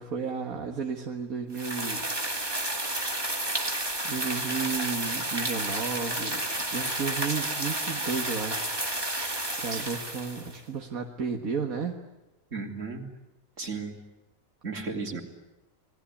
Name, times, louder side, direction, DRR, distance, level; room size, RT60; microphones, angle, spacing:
voice 1, 0.0-2.1 4.0-8.7 9.0-9.3 9.6-12.0, right 5 dB, 75° right, 3 dB, 2.1 m, -33 dB
sound 1, 1.5-10.6, right 1 dB, 15° right, 2.3 m, -31 dB
voice 2, 12.5-13.1 13.6-14.0 14.6-15.2, right 4 dB, 60° right, 3 dB, 3.6 m, -34 dB
27.5 x 20.0 x 9.9 m, 1.0 s
omnidirectional pair, 1.5 m